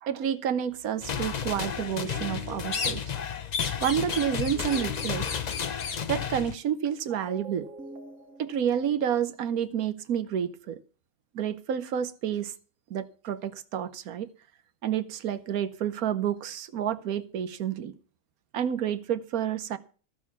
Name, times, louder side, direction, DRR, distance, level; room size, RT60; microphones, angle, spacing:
voice 1, 0.0-3.0 3.8-5.3 6.1-7.7 8.4-10.8 11.3-12.5 12.9-14.3 14.8-17.9 18.5-19.8, right 9 dB, 85° right, 1.4 m, -29 dB
sound 1, 1.0-6.6, left 7 dB, 45° left, 0.6 m, -33 dB
sound 2, 1.6-9.3, right 2 dB, 60° right, 1.8 m, -47 dB
sound 3, 2.7-3.2 3.5-6.1, left 5 dB, 85° left, 1.9 m, -34 dB
14.0 x 6.4 x 7.1 m
omnidirectional pair, 1.5 m